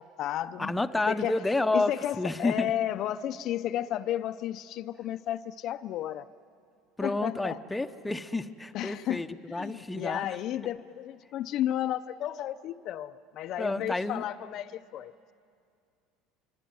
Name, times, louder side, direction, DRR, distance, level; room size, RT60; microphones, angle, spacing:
voice 1, 0.0-0.7 1.1-1.4 1.7-6.3 7.0-7.6 8.7-15.1, left 12 dB, 55° left, 0.6 m, -33 dB
voice 2, 0.6-2.7 7.0-10.3 13.6-14.2, left 2 dB, 10° left, 0.9 m, -30 dB
25.0 x 24.0 x 9.5 m
supercardioid pair, 115°, 0 cm